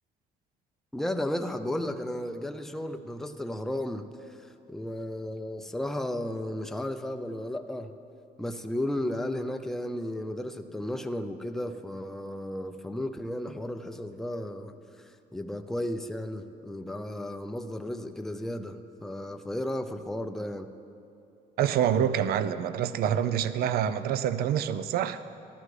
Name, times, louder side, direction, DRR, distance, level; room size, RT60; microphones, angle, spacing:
voice 1, 0.9-4.1 4.7-7.9 8.4-14.8 15.3-20.7, left 1 dB, ahead, 7 dB, 0.5 m, -34 dB
voice 2, 21.6-25.2, right 9 dB, 65° right, 14 dB, 0.4 m, -26 dB
14.0 x 13.0 x 3.2 m, 2.7 s
cardioid pair, 110°, 17 cm